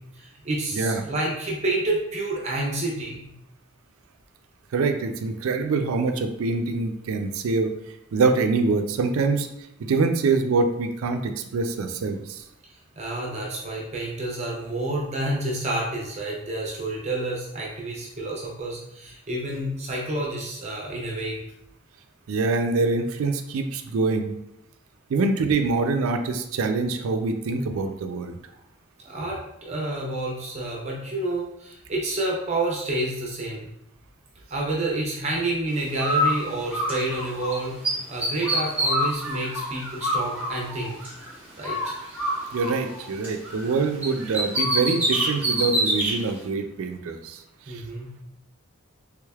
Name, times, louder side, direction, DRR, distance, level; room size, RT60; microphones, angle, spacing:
voice 1, 0.1-3.3 12.6-21.4 29.0-33.7 34.5-41.1 41.6-41.9 47.7-48.1, right 2 dB, 30° right, -3 dB, 0.6 m, -29 dB
voice 2, 0.7-1.1 4.7-7.7 8.1-9.5 9.8-12.4 22.3-24.3 25.1-28.4 42.5-47.4 47.7-47.8, right 4 dB, 85° right, 7 dB, 0.4 m, -25 dB
Bird, 36.0-37.5 37.8-41.3 41.6-43.7 44.0-46.1, equal, 10° right, 0.9 m, -26 dB
3.5 x 3.2 x 2.3 m, 0.80 s
head